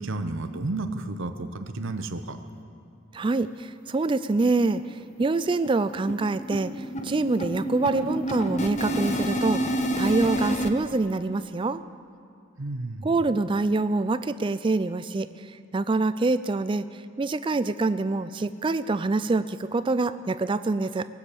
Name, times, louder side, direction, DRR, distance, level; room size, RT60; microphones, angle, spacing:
voice 1, 0.0-2.4 12.6-13.2, right 2 dB, 65° right, 8 dB, 0.8 m, -32 dB
voice 2, 3.1-4.8 5.2-6.7 7.0-9.6 10.0-11.8 13.0-15.3 15.7-16.8 17.2-21.1, right 3 dB, 25° right, 13 dB, 0.3 m, -25 dB
sound 1, 3.9-4.0 4.3-4.5 4.7-10.7, equal, 35° left, 0.8 m, -29 dB
19.5 x 7.2 x 8.3 m, 2.4 s
head